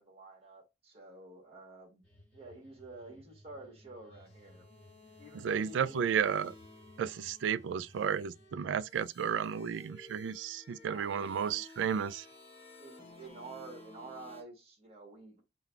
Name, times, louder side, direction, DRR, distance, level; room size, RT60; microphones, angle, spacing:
voice 1, 0.0-2.0 2.3-4.6 5.2-6.0 10.9-11.7 12.8-15.4, right 2 dB, 30° right, 1.5 m, -50 dB
sound 1, 2.0-8.8, left 1 dB, 10° left, 1.6 m, -60 dB
sound 2, 4.1-14.4, left 2 dB, 30° left, 1.0 m, -55 dB
voice 2, 5.4-6.5 7.0-12.2, right 7 dB, 80° right, 0.3 m, -33 dB
3.8 x 2.2 x 4.5 m
head